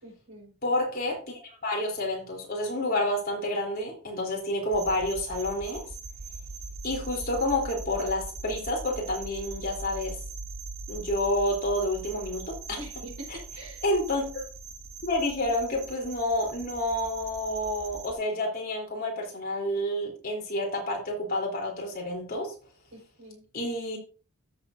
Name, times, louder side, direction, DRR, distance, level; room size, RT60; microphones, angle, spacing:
voice 1, 0.0-0.5 12.8-13.8 22.9-23.4, right 1 dB, 85° right, 0 dB, 4.5 m, -44 dB
voice 2, 0.6-5.8 6.8-10.2 10.9-12.8 13.8-14.4 15.0-22.5 23.5-24.0, left 1 dB, 40° left, -1 dB, 3.6 m, -29 dB
sound 1, 4.7-18.1, right 3 dB, 45° right, 1.1 m, -41 dB
13.5 x 7.3 x 2.7 m, 0.36 s
head